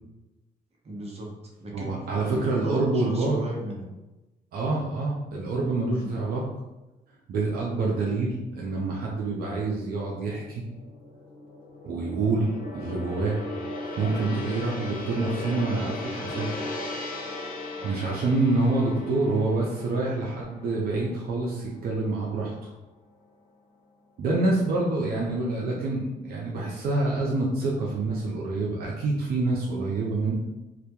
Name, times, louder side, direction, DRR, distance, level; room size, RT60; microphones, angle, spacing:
voice 1, 0.8-3.9 6.0-6.1 17.8-17.9, right 1 dB, 40° right, -1 dB, 0.8 m, -37 dB
voice 2, 1.7-3.4 4.5-6.4 7.3-10.6 11.8-13.4 14.0-16.6 17.8-22.7 24.2-30.3, right 3 dB, 75° right, -3 dB, 0.5 m, -27 dB
Gong, 9.9-22.1 22.4-22.7, left 2 dB, 65° left, 0.6 m, -38 dB
2.2 x 2.1 x 2.8 m, 1.0 s
supercardioid pair, 60°, 16 cm